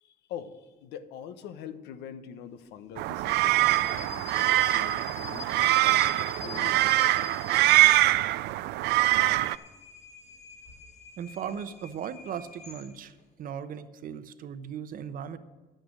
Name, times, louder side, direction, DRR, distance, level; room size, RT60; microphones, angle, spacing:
voice 1, 0.0-7.0, left 8 dB, 85° left, 11 dB, 0.9 m, -44 dB
sound 1, 3.0-9.6, right 17 dB, 80° right, 0.4 m, -23 dB
sound 2, 3.2-8.5 9.0-13.2, left 5 dB, 40° left, 1.2 m, -45 dB
voice 2, 11.2-13.1 13.4-15.4, right 8 dB, 55° right, 12 dB, 0.8 m, -37 dB
11.0 x 9.0 x 6.4 m, 1.3 s
cardioid pair, 110°, 17 cm